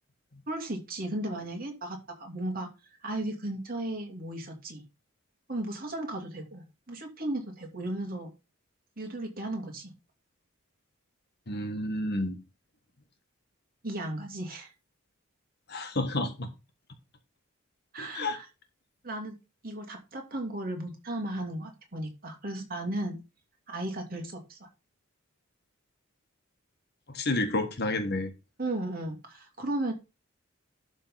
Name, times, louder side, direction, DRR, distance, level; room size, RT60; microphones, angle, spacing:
voice 1, 0.5-2.7 3.0-4.8 5.5-8.3 9.0-9.9 13.8-14.7 17.9-18.5 19.0-19.4 19.6-23.2 23.7-24.7 28.6-29.9, right 1 dB, 45° right, 2.7 m, -35 dB
voice 2, 11.5-12.4 15.7-16.5 18.0-18.4 27.1-28.3, left 2 dB, 50° left, 1.5 m, -30 dB
12.0 x 3.9 x 5.8 m
head